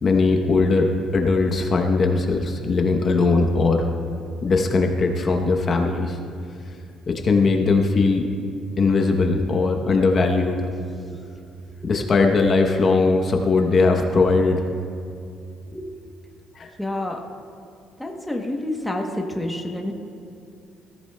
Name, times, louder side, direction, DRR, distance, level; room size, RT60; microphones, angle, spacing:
voice 1, 0.0-3.9 4.4-6.2 7.1-8.3 8.8-10.7 11.8-14.6 16.6-16.7, left 3 dB, 30° left, 3 dB, 0.8 m, -20 dB
voice 2, 10.9-11.3 11.7-11.9 15.7-15.9 16.8-17.2 18.0-19.9, left 1 dB, 5° left, 1 dB, 0.9 m, -29 dB
20.0 x 13.5 x 2.2 m, 2.4 s
cardioid pair, 170°, 0 cm